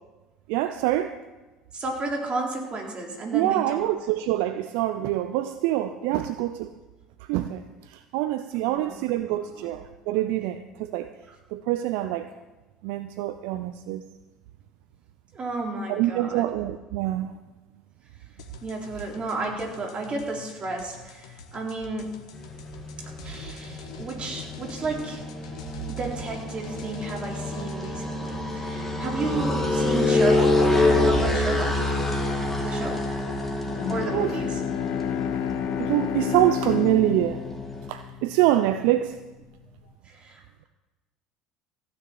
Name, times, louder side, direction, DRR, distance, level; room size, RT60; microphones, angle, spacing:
voice 1, 0.5-1.1 3.3-6.7 7.3-7.6 7.9-11.1 11.5-12.3 12.8-14.0 15.9-17.3 34.1-34.3 35.8-37.4 37.9-39.1, right 14 dB, 65° right, 11 dB, 0.6 m, -25 dB
voice 2, 1.7-3.9 8.6-9.0 9.4-9.7 11.3-11.4 15.3-16.4 18.6-22.1 23.2-25.2 25.9-31.8 32.1-32.3 32.6-33.0 33.9-34.6 40.0-40.7, right 3 dB, 35° right, 0 dB, 4.0 m, -32 dB
sound 1, 18.4-28.0, left 8 dB, 75° left, 1.5 m, -45 dB
sound 2, 22.3-37.9, left 2 dB, 5° left, 3.2 m, -27 dB
Bowed string instrument, 33.6-39.0, left 9 dB, 55° left, 0.9 m, -31 dB
15.0 x 7.1 x 8.6 m, 1.1 s
hypercardioid pair, 65°, 3 cm